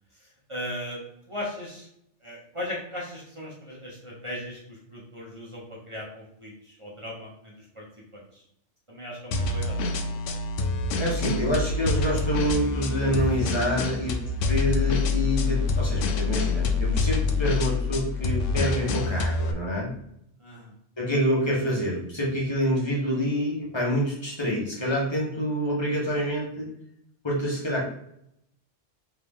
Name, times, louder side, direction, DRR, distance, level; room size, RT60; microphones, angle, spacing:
voice 1, 0.2-1.0 1.3-1.9 2.2-7.8 8.1-8.4 8.9-10.0 20.4-20.7, left 1 dB, 25° right, -5 dB, 1.1 m, -38 dB
sound 1, 9.3-19.5, left 3 dB, 85° left, 0.9 m, -26 dB
voice 2, 11.0-14.2 14.5-19.9 21.0-26.7 27.2-27.8, equal, 25° left, -4 dB, 1.3 m, -27 dB
3.7 x 3.5 x 3.6 m, 0.75 s
omnidirectional pair, 1.2 m